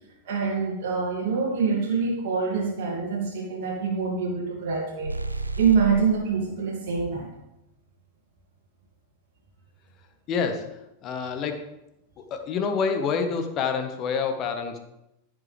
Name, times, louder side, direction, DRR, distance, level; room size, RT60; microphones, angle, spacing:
voice 1, 0.2-5.2 5.6-7.3, right 5 dB, 50° right, -3 dB, 2.4 m, -25 dB
sound 1, 5.0-6.2, right 3 dB, 85° right, 0.5 m, -31 dB
voice 2, 10.3-11.7 12.3-14.8, left 5 dB, 35° left, 6 dB, 1.4 m, -27 dB
14.5 x 6.2 x 3.4 m, 0.88 s
figure-of-eight pair, 90°, 0 cm